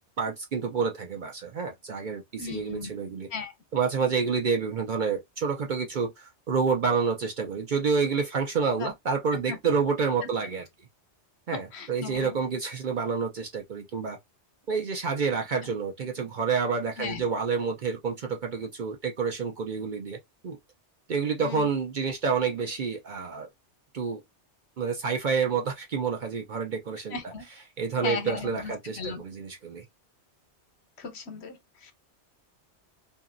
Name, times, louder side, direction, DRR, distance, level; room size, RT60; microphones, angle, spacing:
voice 1, 0.2-3.3 3.7-10.7 11.5-14.2 14.7-20.2 20.4-20.6 21.1-23.5 23.9-24.2 24.8-27.3 27.8-29.8, right 5 dB, 55° right, 0.6 m, -28 dB
voice 2, 2.4-2.9 3.3-3.5 8.8-8.9 9.3-9.4 11.5-12.4 15.6-15.7 17.0-17.3 21.4-21.7 27.1-27.5 28.0-29.2 31.0-31.9, left 5 dB, 70° left, 1.0 m, -36 dB
2.8 x 2.7 x 2.5 m
omnidirectional pair, 1.2 m